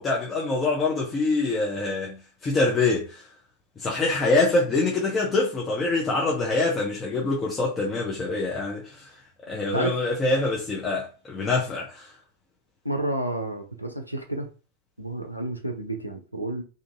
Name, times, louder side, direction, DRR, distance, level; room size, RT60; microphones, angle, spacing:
voice 1, 0.0-3.3 3.8-9.2 9.5-12.1, left 3 dB, 20° left, 0.6 m, -25 dB
voice 2, 12.8-14.5 15.0-16.6, right 1 dB, 90° right, 0.5 m, -30 dB
2.7 x 2.5 x 2.6 m
figure-of-eight pair, 90°, 0 cm